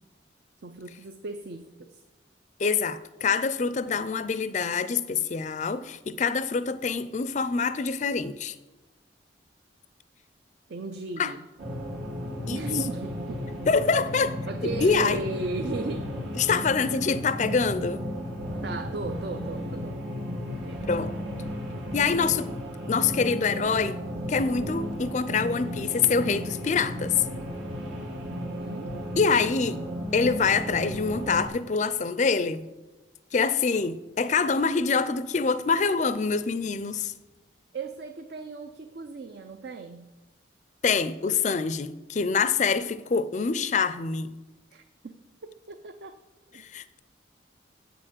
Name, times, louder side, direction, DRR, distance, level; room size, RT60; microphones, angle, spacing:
voice 1, 0.6-2.0 10.7-11.4 12.5-13.4 14.5-16.2 16.5-16.6 18.6-20.0 20.5-20.8 28.3-28.9 37.7-40.1 44.7-45.1 45.4-46.2 46.5-46.6, right 3 dB, 55° right, 0.5 m, -36 dB
voice 2, 2.6-8.5 11.2-11.3 12.5-12.6 13.7-14.4 14.6-15.2 16.4-18.0 20.9-21.1 21.9-22.5 22.9-24.0 24.3-27.2 29.2-29.8 30.1-32.7 33.3-37.1 40.8-44.3 46.6-47.0, left 5 dB, 40° left, 0.4 m, -25 dB
sound 1, 11.6-31.5, left 1 dB, 75° right, 2.1 m, -34 dB
8.2 x 6.5 x 7.5 m
head